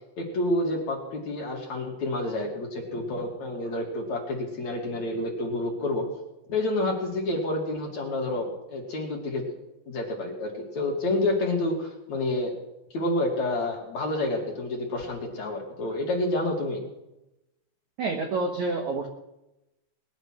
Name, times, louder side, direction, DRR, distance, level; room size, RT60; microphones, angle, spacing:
voice 1, 0.2-6.1 6.5-9.5 9.9-12.6 12.9-16.9, left 1 dB, 45° left, 0 dB, 2.9 m, -29 dB
voice 2, 18.0-19.1, right 3 dB, 75° right, 3 dB, 1.7 m, -28 dB
20.5 x 11.0 x 6.1 m, 0.93 s
omnidirectional pair, 5.4 m